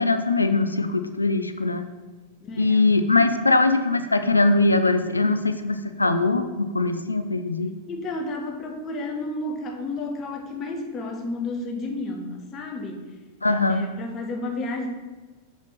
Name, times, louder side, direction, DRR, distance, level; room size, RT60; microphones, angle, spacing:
voice 1, 0.0-1.9 2.6-7.7 13.4-13.9, left 3 dB, 80° left, 9 dB, 0.4 m, -21 dB
voice 2, 2.4-3.0 7.9-13.1 13.5-14.9, left 2 dB, 30° left, 3 dB, 1.0 m, -32 dB
6.4 x 5.1 x 4.0 m, 1.2 s
figure-of-eight pair, 90°, 0 cm